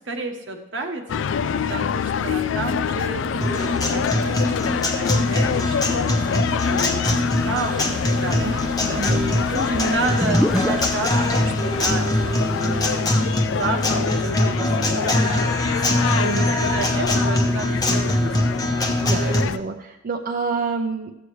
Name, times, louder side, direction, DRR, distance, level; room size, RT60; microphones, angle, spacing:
voice 1, 0.0-1.4 1.7-7.2 7.4-8.5 9.0-12.1 12.4-13.1 13.5-15.4 15.9-18.6, right 3 dB, 75° right, 3 dB, 1.2 m, -31 dB
sound 1, 1.1-19.6, left 7 dB, 85° left, 0.3 m, -26 dB
Guitar, 3.4-19.4, left 1 dB, 20° left, 0.9 m, -23 dB
sound 2, 7.2-12.7, equal, 5° right, 0.5 m, -31 dB
voice 2, 8.3-9.2 16.1-16.4 19.0-21.1, right 4 dB, 50° right, 3 dB, 0.6 m, -28 dB
14.5 x 7.8 x 3.2 m, 0.87 s
head